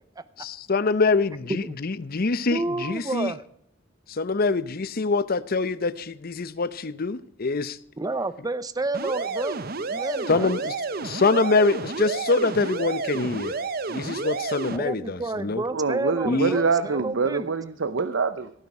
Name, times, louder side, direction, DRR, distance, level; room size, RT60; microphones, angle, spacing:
voice 1, 0.4-3.3 4.1-7.8 10.3-13.6 13.9-15.6 16.3-16.6, left 3 dB, 50° left, 16 dB, 0.7 m, -25 dB
voice 2, 2.5-3.4 8.0-9.6 9.9-10.5 14.7-17.5, right 2 dB, 20° right, 15 dB, 0.7 m, -30 dB
sound 1, 8.9-14.8, right 4 dB, 55° right, 0.9 m, -30 dB
voice 3, 15.7-18.5, right 4 dB, 80° right, 13 dB, 0.7 m, -25 dB
16.5 x 9.5 x 4.9 m, 0.68 s
head